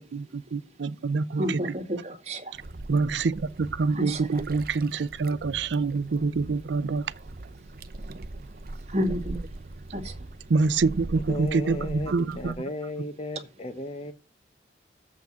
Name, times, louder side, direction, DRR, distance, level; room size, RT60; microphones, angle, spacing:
voice 1, 0.0-1.6 2.9-7.0 10.5-12.5, right 4 dB, 90° right, 0.5 m, -26 dB
voice 2, 1.4-2.5 3.9-4.4 8.9-9.5 9.9-10.1, equal, 35° right, 1.9 m, -30 dB
sound 1, 2.5-12.5, right 2 dB, 55° right, 0.7 m, -41 dB
voice 3, 11.3-14.1, left 1 dB, 35° left, 0.7 m, -35 dB
7.4 x 5.9 x 7.4 m
head